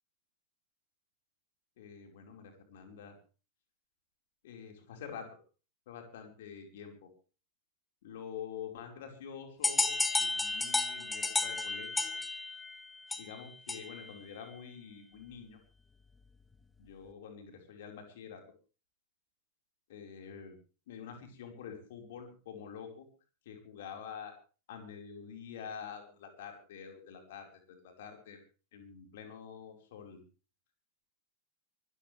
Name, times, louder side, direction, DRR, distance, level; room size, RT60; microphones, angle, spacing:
voice 1, 1.8-3.2 4.4-5.3 5.9-7.1 8.0-12.1 13.2-15.6 16.8-18.4 19.9-20.5 20.9-23.1 23.4-24.3 24.7-28.4 28.7-30.2, left 7 dB, 55° left, 4 dB, 5.0 m, -47 dB
sound 1, 9.6-14.1, left 3 dB, 10° left, 1.4 m, -33 dB
24.0 x 14.5 x 3.5 m, 0.36 s
figure-of-eight pair, 90°, 0 cm